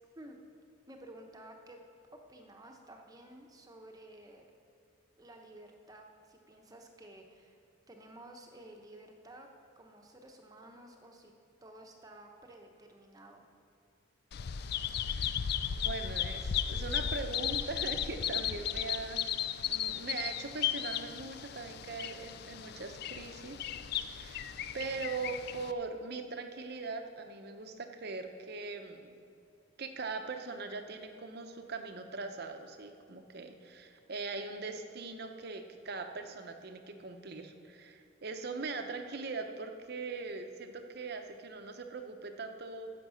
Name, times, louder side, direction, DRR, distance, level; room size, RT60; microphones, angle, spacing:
voice 1, 0.9-1.8 2.1-4.5 5.2-9.5 9.8-11.3 11.6-13.4, right 1 dB, 20° right, 3 dB, 0.9 m, -53 dB
Bird vocalization bird call bird song, 14.3-25.7, left 9 dB, 50° left, 0.4 m, -35 dB
voice 2, 15.7-19.2 19.7-23.6 24.1-24.5 24.7-29.1 29.8-42.9, right 3 dB, 50° right, 6 dB, 0.8 m, -41 dB
15.5 x 6.1 x 6.3 m, 2.4 s
head